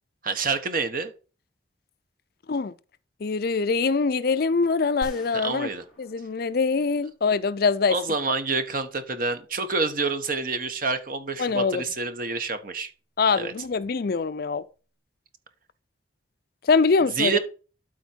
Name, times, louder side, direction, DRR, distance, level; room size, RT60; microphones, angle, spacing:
voice 1, 0.2-1.1 5.3-5.8 7.9-12.9 13.4-13.5 17.1-17.4, right 4 dB, 50° right, 1.2 m, -27 dB
voice 2, 3.2-5.7 6.0-8.0 11.4-11.8 13.2-14.6 16.6-17.4, left 4 dB, 55° left, 0.5 m, -23 dB
sound 1, 5.0-7.3, equal, ahead, 3.7 m, -45 dB
12.5 x 4.4 x 4.4 m
head